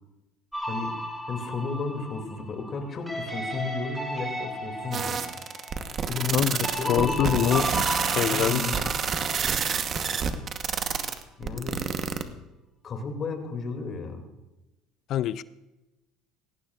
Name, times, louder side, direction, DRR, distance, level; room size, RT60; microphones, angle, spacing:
sound 1, 0.5-9.9, equal, ahead, 4.1 m, -35 dB
voice 1, 0.7-5.2 6.1-7.6 8.3-8.8 11.4-11.9 12.8-14.2, left 4 dB, 40° left, 4 dB, 2.4 m, -33 dB
sound 2, 4.9-12.2, right 6 dB, 40° right, 1.0 m, -28 dB
voice 2, 6.3-7.7 8.1-8.7 15.1-15.4, left 12 dB, 55° left, 17 dB, 0.3 m, -25 dB
18.0 x 16.0 x 2.4 m, 1.0 s
supercardioid pair, 100°, 0 cm